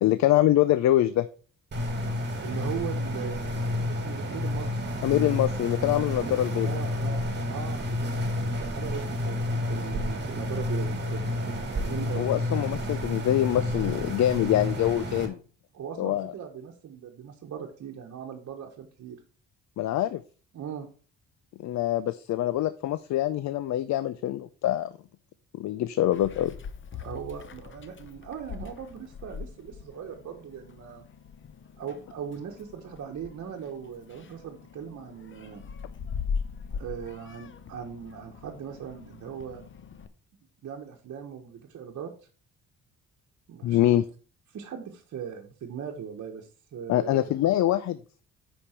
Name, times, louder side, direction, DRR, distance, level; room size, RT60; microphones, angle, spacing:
voice 1, 0.0-1.3 5.0-6.8 12.2-15.4 16.0-16.3 19.8-20.2 21.6-24.9 25.5-26.5 43.6-44.0 46.9-48.0, left 13 dB, 65° left, 14 dB, 0.5 m, -24 dB
sound 1, 1.7-15.3, left 1 dB, 35° right, 2.0 m, -30 dB
voice 2, 2.4-4.8 6.2-12.3 15.7-19.2 20.5-20.9 26.9-31.0 31.8-35.6 36.7-39.7 40.6-42.1 43.5-44.0 44.5-47.3, right 8 dB, 60° right, 0 dB, 1.2 m, -39 dB
Meow, 26.1-40.1, left 6 dB, 40° left, 0.8 m, -41 dB
8.6 x 5.1 x 4.4 m, 0.39 s
cardioid pair, 90°, 30 cm